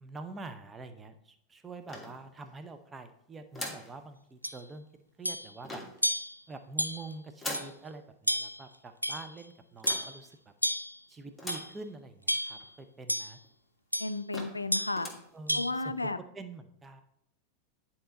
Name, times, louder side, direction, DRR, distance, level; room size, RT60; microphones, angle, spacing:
voice 1, 0.0-4.9 5.2-5.8 6.5-10.5 11.1-13.4 15.3-17.0, right 3 dB, 15° right, 8 dB, 0.7 m, -46 dB
sound 1, 1.9-2.6 3.5-4.0 5.6-6.1 7.4-7.8 9.8-10.2 11.4-11.8 12.3-12.4 12.6-12.7 13.4-13.5 13.9-14.0 14.3-14.7 14.9-15.3, left 1 dB, 5° left, 1.6 m, -41 dB
sound 2, 4.4-4.6 5.3-5.5 6.0-6.4 6.8-7.1 7.5-7.7 8.3-8.6 9.0-9.4 9.9-10.2 10.6-11.0 11.5-11.7 12.3-12.7 13.1-13.4 13.9-14.2 14.7-15.0 15.5-15.7, equal, 90° right, 0.4 m, -31 dB
voice 2, 14.0-15.1 15.5-16.2, left 2 dB, 80° left, 13 dB, 0.4 m, -33 dB
10.0 x 4.3 x 3.9 m, 0.71 s
figure-of-eight pair, 90°, 0 cm